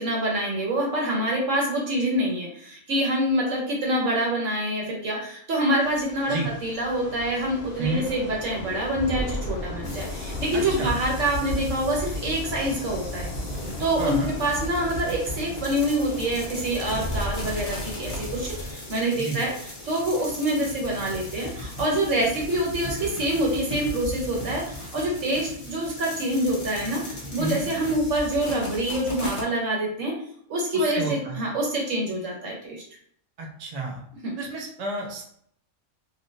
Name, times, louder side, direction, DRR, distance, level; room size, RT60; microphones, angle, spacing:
voice 1, 0.0-13.3 13.8-19.5 19.9-30.1 30.5-32.8 34.2-34.4, right 1 dB, 65° right, -2 dB, 1.3 m, -26 dB
Thunder / Rain, 5.8-18.7, left 1 dB, 85° left, 0.3 m, -36 dB
sound 1, 9.8-29.4, left 1 dB, 30° left, 0.7 m, -36 dB
voice 2, 10.5-10.9 14.0-14.3 19.1-19.4 27.4-27.6 30.7-31.5 33.4-34.0 34.4-35.2, right 2 dB, 40° right, -1 dB, 0.5 m, -31 dB
3.3 x 2.5 x 2.7 m, 0.66 s
omnidirectional pair, 1.5 m